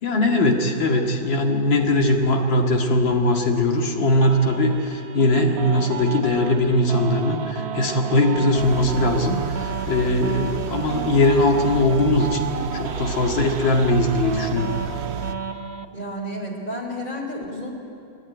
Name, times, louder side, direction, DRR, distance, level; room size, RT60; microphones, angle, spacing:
voice 1, 0.0-14.8, left 1 dB, 85° left, 2 dB, 2.7 m, -20 dB
sound 1, 4.2-15.8, right 7 dB, 55° right, 0.7 m, -32 dB
Engine, 8.6-15.3, right 6 dB, 70° right, 1.5 m, -32 dB
voice 2, 15.9-17.7, equal, 25° left, 0 dB, 3.8 m, -31 dB
28.0 x 11.0 x 9.7 m, 2.8 s
omnidirectional pair, 2.0 m